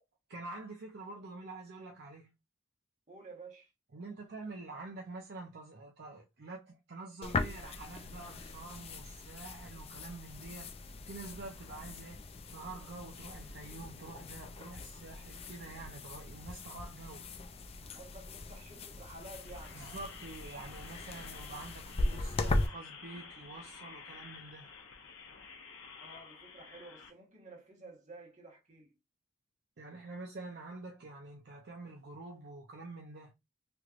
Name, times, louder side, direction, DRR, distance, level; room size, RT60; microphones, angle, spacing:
voice 1, 0.3-2.3 3.9-12.2 12.5-17.3 19.7-24.7 29.8-33.3, right 3 dB, 55° right, 0.6 m, -47 dB
voice 2, 3.1-3.7 17.9-19.8 26.0-28.9, right 2 dB, 35° right, 1.3 m, -52 dB
sound 1, 7.2-22.7, left 2 dB, 30° left, 0.4 m, -39 dB
sound 2, 19.1-27.1, left 5 dB, 70° left, 0.9 m, -51 dB
3.1 x 3.0 x 2.4 m
head